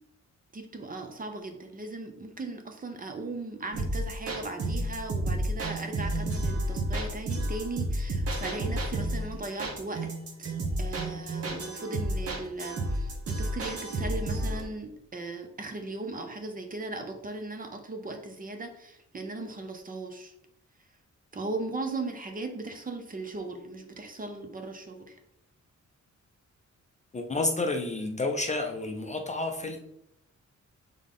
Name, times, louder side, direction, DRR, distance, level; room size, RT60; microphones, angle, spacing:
voice 1, 0.5-10.1 10.4-20.3 21.3-25.2, right 2 dB, 30° right, 5 dB, 0.5 m, -38 dB
sound 1, 3.7-14.6, right 1 dB, 50° right, 0.9 m, -31 dB
voice 2, 27.1-29.8, left 2 dB, 25° left, 3 dB, 0.4 m, -30 dB
4.0 x 3.7 x 3.5 m, 0.78 s
wide cardioid pair, 150°, 30 cm